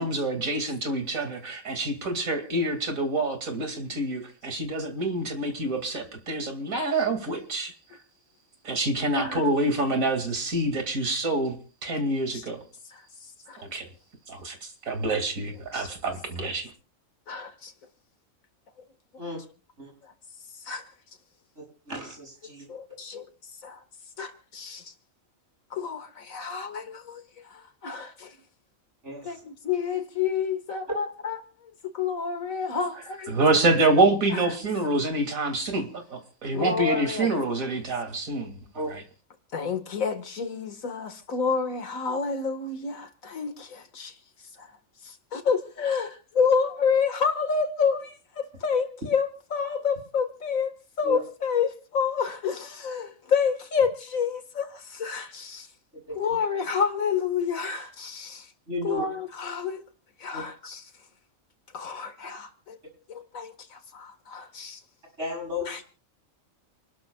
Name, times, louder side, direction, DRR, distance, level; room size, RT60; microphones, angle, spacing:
voice 1, 0.0-7.7 8.6-12.6 13.6-13.9 14.3-16.7 33.3-38.6 38.9-39.0, right 2 dB, 85° right, 2.7 m, -26 dB
voice 2, 17.3-17.7 20.0-20.1 20.6-20.8 22.7-23.3 23.6-23.8 24.2-24.9 25.7-28.4 29.2-33.4 34.3-34.4 36.5-37.3 39.5-44.2 44.6-44.7 45.0-55.7 56.2-58.5 58.8-59.8 60.2-60.8 61.7-62.8 63.1-64.8 65.7-65.8, left 6 dB, 80° left, 2.0 m, -29 dB
voice 3, 21.9-22.7 29.0-29.4 30.9-31.0 38.7-38.9 51.0-51.2 56.1-56.2 58.7-59.0 60.3-60.4 65.2-65.7, left 1 dB, 60° right, 8.2 m, -33 dB
29.0 x 12.5 x 2.3 m
omnidirectional pair, 1.4 m